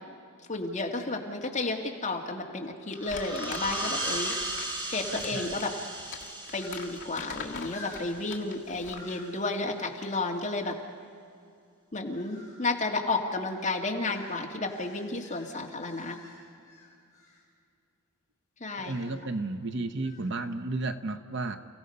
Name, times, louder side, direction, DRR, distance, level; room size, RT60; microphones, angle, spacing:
voice 1, 0.5-5.7 6.5-10.8 11.9-16.2 18.6-19.0, left 2 dB, 35° left, 1 dB, 2.0 m, -32 dB
sound 1, 2.9-3.1 3.4-3.6 3.9-6.0 6.5-7.1 7.7-8.5 8.9-9.4 10.0-10.3 12.1-12.7 13.5-17.4 18.8-19.3 20.0-20.4, left 3 dB, 15° left, 5.5 m, -50 dB
sound 2, 2.9-8.3, right 1 dB, 20° right, 2.5 m, -36 dB
Crumpling crinkling, 3.1-9.1, left 5 dB, 60° left, 1.7 m, -43 dB
voice 2, 5.1-5.5 18.8-21.6, right 2 dB, 55° right, 9 dB, 0.9 m, -33 dB
30.0 x 16.5 x 5.5 m, 2.4 s
head